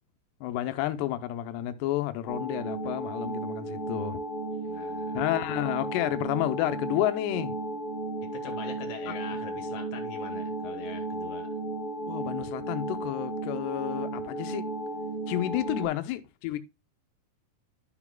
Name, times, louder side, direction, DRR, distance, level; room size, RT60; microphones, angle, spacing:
voice 1, 0.4-4.2 5.1-7.5 9.1-9.2 12.1-14.7 15.3-16.6, left 14 dB, 85° left, 2.9 m, -30 dB
sound 1, 2.3-15.9, right 2 dB, 35° left, 2.1 m, -34 dB
voice 2, 4.6-5.2 8.2-11.5 15.7-15.9, left 5 dB, 65° left, 2.7 m, -43 dB
12.5 x 6.0 x 2.2 m
omnidirectional pair, 4.7 m